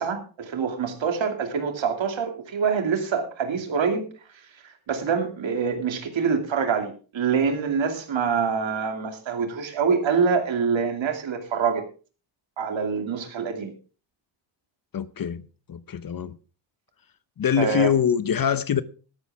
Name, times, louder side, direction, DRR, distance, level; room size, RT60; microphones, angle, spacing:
voice 1, 0.0-4.1 4.6-11.8 12.6-13.7 17.6-17.9, right 6 dB, 70° right, 2.7 m, -25 dB
voice 2, 14.9-15.4 15.7-16.4 17.4-18.8, left 8 dB, 45° left, 0.8 m, -24 dB
14.5 x 12.0 x 3.5 m
cardioid pair, 85°, 47 cm